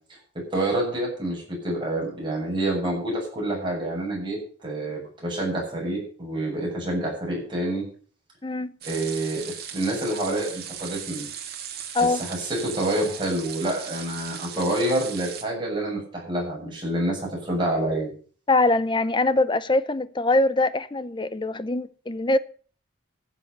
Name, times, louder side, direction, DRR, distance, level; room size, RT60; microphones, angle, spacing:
voice 1, 0.5-7.8 8.8-9.5 9.7-11.3 12.0-18.1, right 1 dB, 25° right, 7.7 m, -27 dB
voice 2, 8.4-8.7 11.9-12.2 18.5-22.4, left 2 dB, 25° left, 0.6 m, -23 dB
sound 1, 8.8-15.4, right 8 dB, 50° right, 2.4 m, -38 dB
15.0 x 7.7 x 6.8 m
head